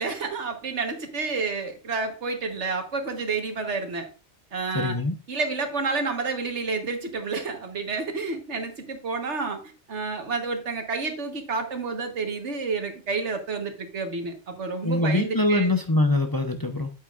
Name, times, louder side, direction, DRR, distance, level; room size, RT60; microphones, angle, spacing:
voice 1, 0.0-4.1 4.5-5.0 5.3-9.6 9.9-15.7, right 4 dB, 85° right, 5 dB, 1.7 m, -29 dB
voice 2, 4.7-5.1 14.8-16.9, left 2 dB, 20° left, 4 dB, 0.7 m, -23 dB
8.8 x 8.4 x 2.5 m, 0.33 s
omnidirectional pair, 1.2 m